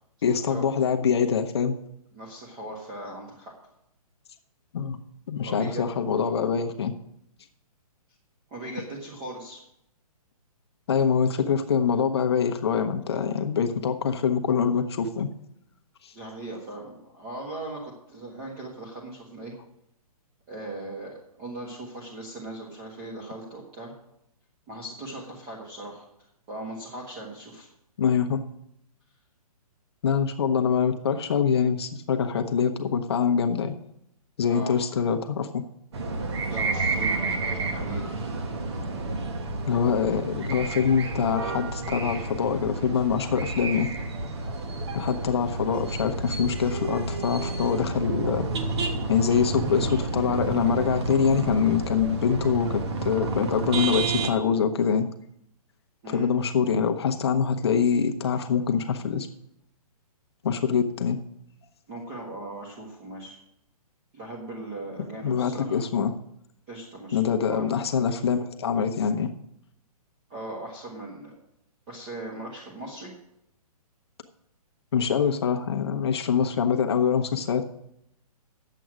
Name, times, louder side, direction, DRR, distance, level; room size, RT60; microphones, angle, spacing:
voice 1, 0.2-1.8 4.7-5.0 5.3-6.9 10.9-15.3 16.0-16.1 28.0-28.4 30.0-33.7 34.4-35.6 39.7-43.9 44.9-48.5 49.1-55.1 56.1-59.3 60.4-61.2 65.2-66.1 67.1-69.3 74.9-77.6, left 7 dB, 40° left, 5 dB, 0.8 m, -24 dB
voice 2, 2.1-3.5 5.4-5.8 8.5-9.6 16.1-19.5 20.5-23.9 24.7-26.1 26.5-27.7 34.5-34.8 36.5-38.1 56.0-56.3 61.9-63.4 64.1-65.8 66.7-67.7 70.3-71.3 71.9-73.1, right 2 dB, 20° right, -2 dB, 1.5 m, -39 dB
sound 1, 35.9-54.3, right 3 dB, 45° right, 1.3 m, -30 dB
10.5 x 7.7 x 6.2 m, 0.77 s
hypercardioid pair, 170°, 20 cm